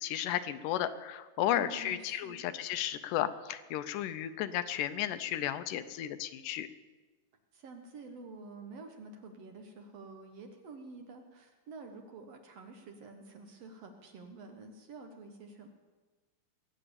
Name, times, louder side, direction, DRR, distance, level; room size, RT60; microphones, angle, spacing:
voice 1, 0.0-6.7, left 12 dB, 80° left, 12 dB, 2.2 m, -34 dB
voice 2, 1.5-2.4 7.5-15.7, right 3 dB, 60° right, 4 dB, 2.0 m, -49 dB
21.0 x 8.6 x 7.0 m, 1.3 s
omnidirectional pair, 3.8 m